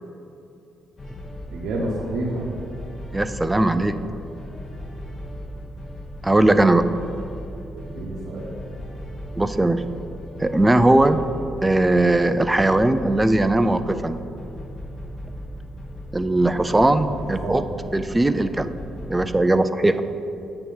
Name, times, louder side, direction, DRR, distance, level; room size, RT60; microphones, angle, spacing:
sound 1, 1.0-19.1, equal, 40° left, 1.5 m, -37 dB
voice 1, 1.5-2.4 7.7-8.5 17.1-17.2 17.4-17.6 19.8-20.0, right 1 dB, 85° right, -5 dB, 0.9 m, -29 dB
voice 2, 3.1-4.0 6.2-7.0 9.4-9.9 10.4-11.2 11.6-14.2 16.1-17.6 17.9-18.7 19.1-20.0, right 2 dB, 15° right, 11 dB, 0.3 m, -19 dB
8.5 x 2.9 x 5.3 m, 2.9 s
cardioid pair, 90°, 0 cm